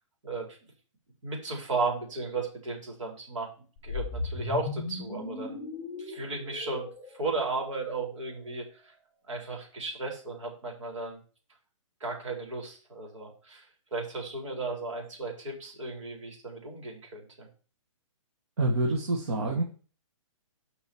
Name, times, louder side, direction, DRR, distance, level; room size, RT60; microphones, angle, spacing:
voice 1, 0.2-0.6 1.2-3.5 3.8-5.6 6.0-6.9 7.1-8.9 9.3-11.2 12.0-13.7 13.9-17.5, right 3 dB, 65° right, 1 dB, 4.5 m, -35 dB
sound 1, 3.8-8.1, left 3 dB, 15° left, 3.8 m, -37 dB
voice 2, 18.6-19.6, right 2 dB, 50° right, 0 dB, 1.8 m, -27 dB
7.5 x 5.6 x 7.2 m, 0.38 s
hypercardioid pair, 170°, 17 cm